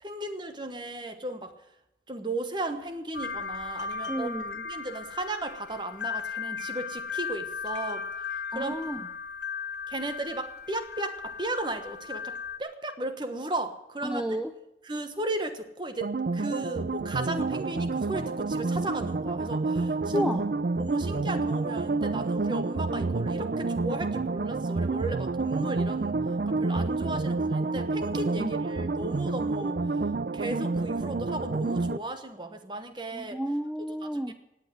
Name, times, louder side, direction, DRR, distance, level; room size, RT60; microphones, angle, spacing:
voice 1, 0.0-1.5 2.1-4.3 4.6-8.0 8.5-8.7 9.9-14.2 14.9-20.2 20.8-26.2 26.5-29.8 30.3-33.4 34.0-34.3, right 2 dB, 25° right, 8 dB, 1.2 m, -35 dB
sound 1, 3.1-12.6, left 5 dB, 75° left, 1.8 m, -36 dB
voice 2, 4.1-4.6 8.5-9.1 14.0-14.5 20.1-20.5 28.4-28.6 33.1-34.3, equal, 5° right, 7 dB, 0.5 m, -31 dB
sound 2, 16.0-32.0, right 3 dB, 55° right, 0.5 m, -29 dB
17.5 x 8.6 x 7.8 m, 0.86 s
head